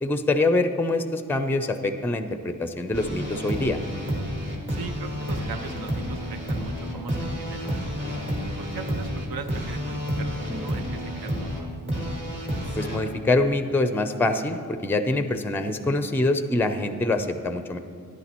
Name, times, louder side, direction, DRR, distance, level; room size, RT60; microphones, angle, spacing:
voice 1, 0.0-3.8 12.8-17.8, left 2 dB, 5° left, 9 dB, 0.5 m, -25 dB
sound 1, 2.9-13.0, equal, 35° right, 2.3 m, -30 dB
voice 2, 4.7-7.8 8.6-11.7, right 5 dB, 75° right, 8 dB, 0.7 m, -39 dB
12.5 x 10.0 x 3.0 m, 2.2 s
cardioid pair, 80°, 36 cm